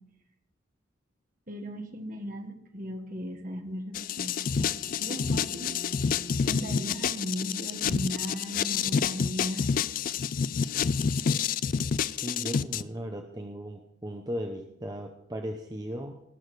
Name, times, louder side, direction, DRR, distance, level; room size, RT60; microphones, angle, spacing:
voice 1, 1.5-4.7 5.0-5.7 6.5-9.7, equal, 45° right, 4 dB, 1.6 m, -37 dB
sound 1, 3.9-9.5, equal, 85° left, 1.8 m, -48 dB
sound 2, 3.9-12.8, left 6 dB, 45° left, 0.3 m, -28 dB
voice 2, 12.2-16.1, equal, 20° right, 3 dB, 0.7 m, -36 dB
19.0 x 6.4 x 4.8 m, 0.82 s
head